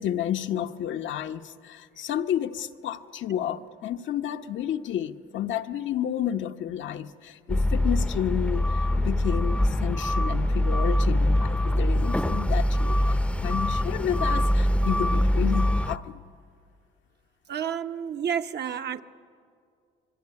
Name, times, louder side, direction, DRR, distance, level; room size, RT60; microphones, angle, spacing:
voice 1, 0.0-16.2, left 10 dB, 70° left, 7 dB, 1.0 m, -31 dB
sound 1, 7.5-16.0, left 1 dB, 5° left, 0.7 m, -24 dB
voice 2, 17.5-19.0, right 8 dB, 55° right, 7 dB, 1.1 m, -30 dB
26.0 x 22.0 x 9.7 m, 2.2 s
cardioid pair, 90°, 20 cm